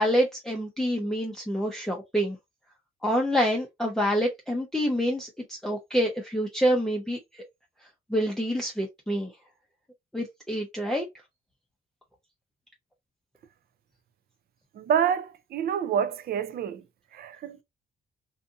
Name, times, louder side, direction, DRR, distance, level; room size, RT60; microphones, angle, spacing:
voice 1, 0.0-2.4 3.0-7.2 8.1-9.3 10.1-11.1, equal, ahead, 0.6 m, -27 dB
voice 2, 14.8-16.8 17.1-17.6, right 8 dB, 50° right, 0.4 m, -27 dB
2.6 x 2.5 x 2.5 m
cardioid pair, 90°, 20 cm